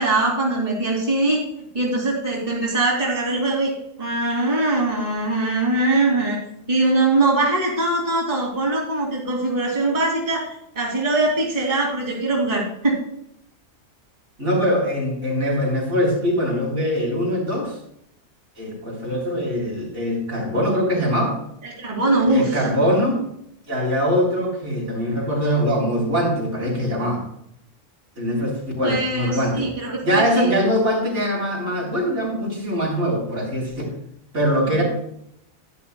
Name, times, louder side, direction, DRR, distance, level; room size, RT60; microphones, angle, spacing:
voice 1, 0.0-1.4 1.7-3.7 4.0-6.4 6.7-13.0 21.6-22.7 28.8-30.6, right 2 dB, 30° right, -3 dB, 2.5 m, -22 dB
voice 2, 14.4-17.8 18.6-21.3 22.2-23.3 23.7-27.2 28.2-29.7 30.0-33.7 34.3-34.8, equal, 65° right, -4 dB, 4.0 m, -22 dB
11.0 x 11.0 x 2.2 m, 0.74 s
omnidirectional pair, 1.3 m